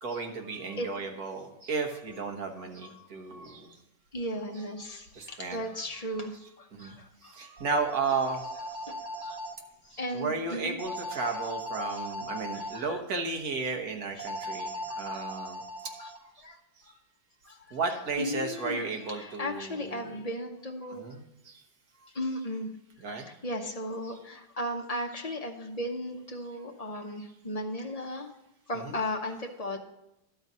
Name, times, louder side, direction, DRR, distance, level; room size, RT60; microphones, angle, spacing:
voice 1, 0.0-3.8 4.5-4.8 5.1-5.6 5.9-6.3 6.7-7.0 7.2-8.4 9.2-9.4 9.9-14.7 14.9-15.6 15.9-16.1 17.7-20.2 20.9-21.6 23.0-23.3 24.0-24.1 28.1-28.2 28.7-29.0, right 4 dB, 60° right, 3 dB, 1.6 m, -34 dB
voice 2, 4.1-7.4 8.9-9.4 9.8-10.8 11.2-11.4 12.5-13.0 14.2-14.3 14.9-15.2 16.0-16.1 16.4-16.6 16.9-17.0 17.4-17.8 18.2-21.1 22.1-22.7 23.2-28.3 28.7-29.8, left 1 dB, 35° left, 2 dB, 0.6 m, -36 dB
sound 1, 7.6-9.5 10.8-12.8 14.2-16.2, equal, 30° right, 1.2 m, -38 dB
12.0 x 4.0 x 7.3 m, 0.88 s
omnidirectional pair, 1.8 m